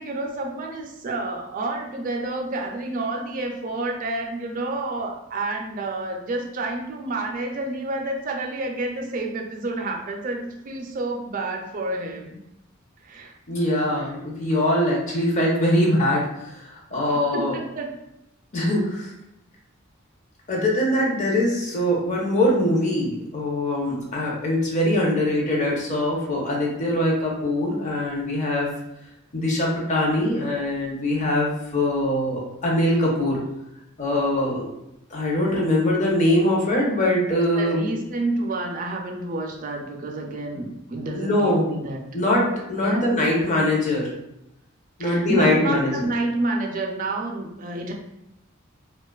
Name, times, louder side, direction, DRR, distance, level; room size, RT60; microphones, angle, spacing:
voice 1, 0.0-12.4 13.0-13.4 16.9-17.0 17.3-17.9 37.5-42.0 42.8-43.2 45.0-47.9, right 2 dB, 40° right, 2 dB, 0.4 m, -29 dB
voice 2, 13.5-17.5 18.5-19.1 20.5-28.7 29.3-33.4 34.0-34.7 35.1-37.9 41.1-41.7 42.1-44.1 45.0-46.1, left 1 dB, 35° left, -3 dB, 0.6 m, -22 dB
2.4 x 2.3 x 2.3 m, 0.87 s
head